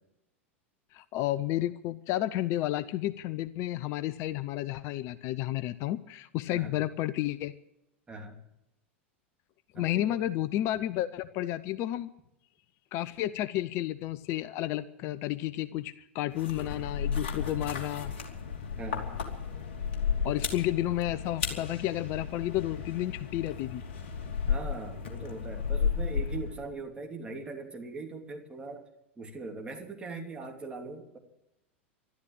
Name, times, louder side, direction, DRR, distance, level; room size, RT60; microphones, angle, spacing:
voice 1, 0.9-7.5 9.7-12.1 12.9-18.1 20.2-23.8, left 14 dB, 40° left, 15 dB, 0.6 m, -31 dB
voice 2, 9.7-10.3 18.8-19.1 24.5-28.9 29.2-31.2, right 3 dB, 15° right, 1 dB, 3.1 m, -41 dB
sound 1, 16.3-26.7, left 6 dB, 55° left, 2.9 m, -33 dB
13.0 x 12.5 x 8.9 m, 0.89 s
figure-of-eight pair, 90°, 7 cm